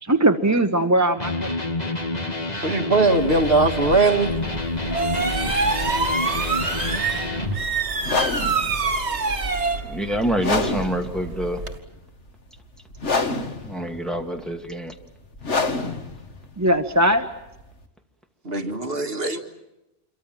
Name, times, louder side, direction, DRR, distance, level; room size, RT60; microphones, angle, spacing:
voice 1, 0.0-1.5 1.8-1.9 16.6-17.3, right 1 dB, 15° right, 7 dB, 0.9 m, -20 dB
Electric guitar, 1.2-7.6, left 2 dB, 35° left, 2.4 m, -28 dB
voice 2, 2.6-4.3 18.5-19.4, right 3 dB, 55° right, 5 dB, 2.1 m, -20 dB
sound 1, 3.2-11.8, right 3 dB, 75° right, 2.5 m, -27 dB
sound 2, 8.0-17.8, left 3 dB, 90° left, 2.2 m, -28 dB
voice 3, 9.9-11.6 13.7-14.9, right 1 dB, ahead, 3 dB, 2.2 m, -26 dB
28.0 x 24.0 x 7.6 m, 0.91 s
omnidirectional pair, 1.2 m